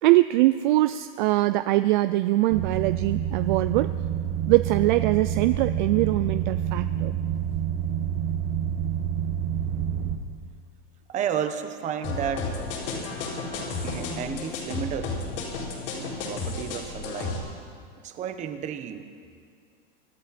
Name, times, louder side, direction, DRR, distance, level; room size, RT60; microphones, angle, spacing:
voice 1, 0.0-4.0 4.5-7.2, right 17 dB, 50° right, 12 dB, 0.4 m, -22 dB
sound 1, 2.5-10.2, right 9 dB, 70° right, 1.6 m, -28 dB
voice 2, 11.1-12.5 13.8-15.2 15.9-17.4 18.0-19.1, right 8 dB, 25° right, 8 dB, 1.0 m, -32 dB
sound 2, 12.0-17.4, left 3 dB, 65° left, 4.3 m, -32 dB
25.0 x 12.0 x 4.3 m, 2.2 s
supercardioid pair, 155°, 30 cm